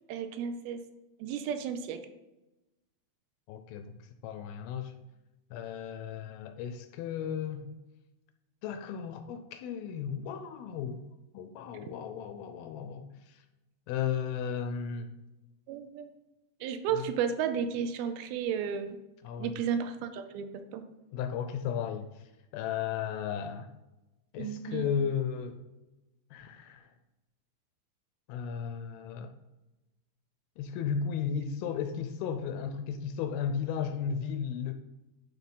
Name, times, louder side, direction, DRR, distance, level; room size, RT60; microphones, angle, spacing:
voice 1, 0.1-0.8 1.2-2.0 15.7-16.1 16.6-19.0 19.4-20.5 20.7-20.8 24.4-24.9, right 7 dB, 80° right, 8 dB, 2.4 m, -33 dB
voice 2, 3.5-4.0 4.2-4.9 5.5-7.6 8.6-11.0 11.3-13.4 13.9-15.1 16.9-17.1 19.2-19.5 21.1-22.1 22.5-23.7 24.3-25.6 26.3-26.9 28.3-29.3 30.6-34.7, left 7 dB, 80° left, 8 dB, 2.3 m, -34 dB
11.5 x 3.8 x 5.4 m, 1.0 s
omnidirectional pair, 4.6 m